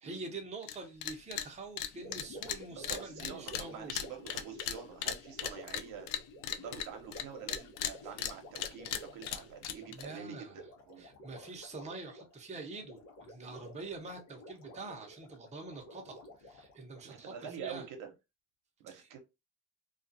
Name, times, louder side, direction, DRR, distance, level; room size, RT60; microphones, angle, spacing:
voice 1, 0.0-3.9 8.0-8.2 9.9-10.6 11.0-17.3 17.6-17.8 18.9-19.0, right 3 dB, 20° right, 0.8 m, -45 dB
sound 1, 0.6-0.8 1.0-1.5 1.8-7.2 7.5-10.1, left 10 dB, 75° left, 0.5 m, -37 dB
Gurgling, 1.9-17.2, equal, 55° left, 0.9 m, -52 dB
voice 2, 2.9-6.1 6.4-11.1 17.0-18.1 18.8-19.2, right 8 dB, 75° right, 0.8 m, -46 dB
2.4 x 2.4 x 2.6 m
cardioid pair, 100°, 32 cm